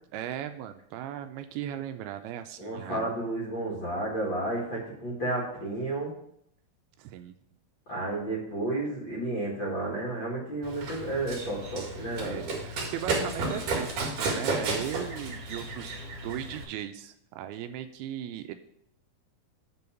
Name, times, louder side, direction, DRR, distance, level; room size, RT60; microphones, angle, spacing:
voice 1, 0.1-3.1 7.0-7.4 12.2-18.5, right 11 dB, 85° right, 9 dB, 2.4 m, -37 dB
voice 2, 2.6-6.1 7.9-12.5, right 2 dB, 45° left, -3 dB, 1.8 m, -32 dB
Run, 10.6-16.6, right 3 dB, 55° right, 3.2 m, -33 dB
8.6 x 3.8 x 6.8 m, 0.71 s
omnidirectional pair, 4.5 m